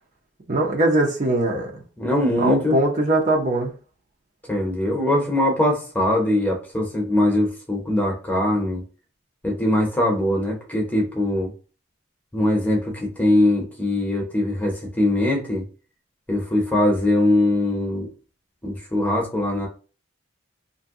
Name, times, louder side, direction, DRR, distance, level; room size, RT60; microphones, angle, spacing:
voice 1, 0.5-1.8 2.4-3.7, right 1 dB, 40° right, 0.6 m, -21 dB
voice 2, 2.0-2.8 4.5-8.8 9.4-11.5 12.3-15.7 16.3-18.1 18.6-19.7, left 1 dB, 10° left, 0.8 m, -21 dB
2.6 x 2.2 x 3.5 m
head